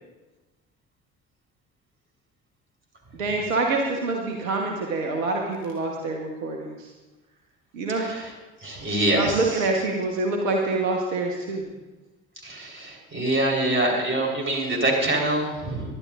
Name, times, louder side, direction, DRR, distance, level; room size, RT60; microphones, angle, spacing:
voice 1, 3.1-6.9 7.7-8.1 9.2-11.7, right 3 dB, 75° right, 1 dB, 1.3 m, -26 dB
voice 2, 8.6-9.4 12.4-15.8, right 1 dB, 30° right, 0 dB, 4.0 m, -24 dB
19.0 x 11.5 x 2.5 m, 1.2 s
figure-of-eight pair, 50°, 40 cm